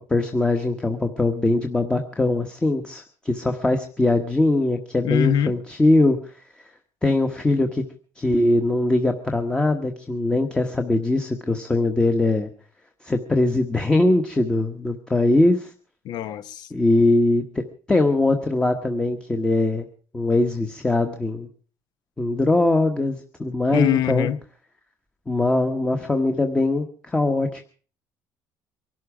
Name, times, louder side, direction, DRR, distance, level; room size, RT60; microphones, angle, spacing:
voice 1, 0.1-6.3 7.0-7.8 8.2-12.5 13.0-15.7 16.7-19.9 20.1-21.5 22.2-24.3 25.3-27.6, left 2 dB, 10° left, 1.2 m, -21 dB
voice 2, 5.0-5.5 16.0-16.7 23.7-24.4, left 10 dB, 60° left, 1.1 m, -23 dB
23.5 x 12.5 x 4.9 m
cardioid pair, 150°, 8 cm